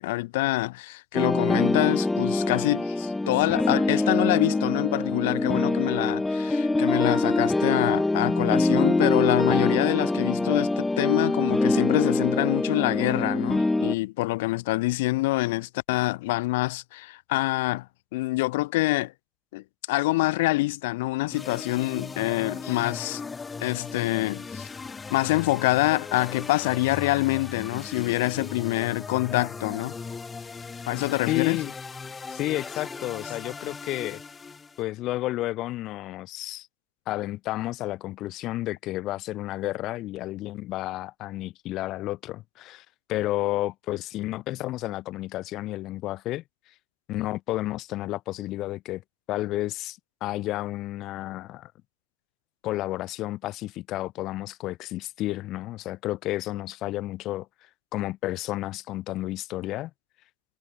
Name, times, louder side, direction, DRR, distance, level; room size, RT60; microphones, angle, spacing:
voice 1, 0.0-17.9 18.1-19.1 19.5-23.2 23.6-24.7 25.1-30.0 30.9-31.6, left 20 dB, 90° left, 0.5 m, -26 dB
sound 1, 1.1-13.9, left 2 dB, 15° left, 0.6 m, -24 dB
sound 2, 21.3-34.8, left 4 dB, 35° left, 4.5 m, -38 dB
voice 2, 31.3-31.7 32.3-34.2 34.8-36.7 37.1-46.4 47.1-49.0 49.3-51.7 52.6-57.5 57.9-59.9, left 16 dB, 75° left, 1.3 m, -31 dB
hypercardioid pair, 55°, 0 cm